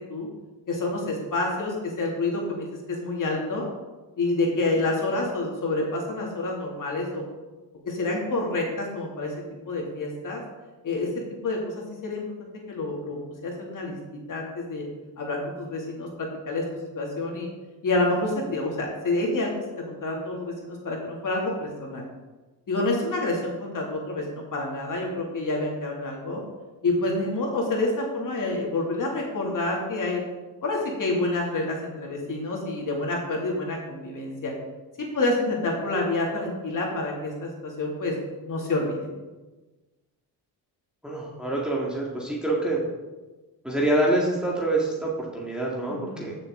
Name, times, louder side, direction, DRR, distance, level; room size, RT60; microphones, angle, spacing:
voice 1, 0.7-3.7 4.2-7.2 7.9-9.3 9.6-10.4 10.8-11.1 11.4-11.7 12.0-12.2 12.7-14.8 15.2-16.7 17.0-17.5 17.8-19.5 19.9-22.0 22.7-26.4 26.8-30.2 30.6-34.5 35.0-38.1 38.4-39.1 45.9-46.4, left 2 dB, 50° left, -1 dB, 2.6 m, -28 dB
voice 2, 41.0-42.8 43.6-46.3, right 1 dB, ahead, -4 dB, 2.0 m, -26 dB
14.0 x 6.7 x 3.8 m, 1.2 s
cardioid pair, 95°, 40 cm